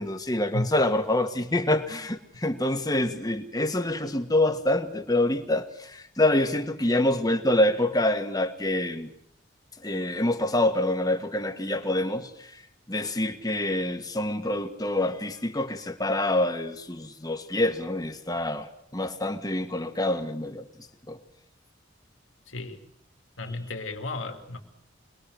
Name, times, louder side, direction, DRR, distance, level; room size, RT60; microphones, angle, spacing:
voice 1, 0.0-9.1 9.8-12.3 12.9-20.6 21.1-21.2, left 1 dB, 20° left, 7 dB, 1.6 m, -26 dB
voice 2, 22.5-22.8 23.4-24.6, left 2 dB, 90° left, 4 dB, 2.8 m, -33 dB
25.5 x 20.5 x 6.5 m, 0.74 s
head